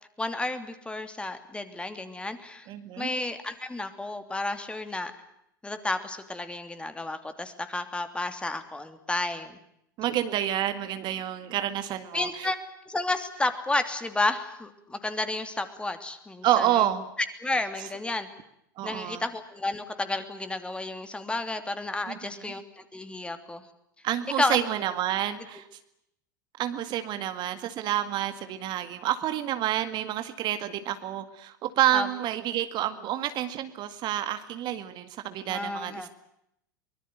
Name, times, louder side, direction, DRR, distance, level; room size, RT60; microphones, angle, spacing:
voice 1, 0.2-2.7 3.0-5.1 5.6-9.5 12.1-12.6 12.9-16.9 17.4-18.3 18.8-23.6 24.4-24.6 31.9-32.1 35.5-36.1, left 2 dB, 10° left, 9 dB, 2.9 m, -31 dB
voice 2, 2.7-3.1 10.0-12.5 16.4-17.0 18.8-19.2 22.1-22.2 22.5-22.6 24.0-25.7 26.6-36.1, right 12 dB, 45° right, 10 dB, 2.0 m, -29 dB
24.0 x 20.5 x 9.1 m, 0.77 s
hypercardioid pair, 90°, 11 cm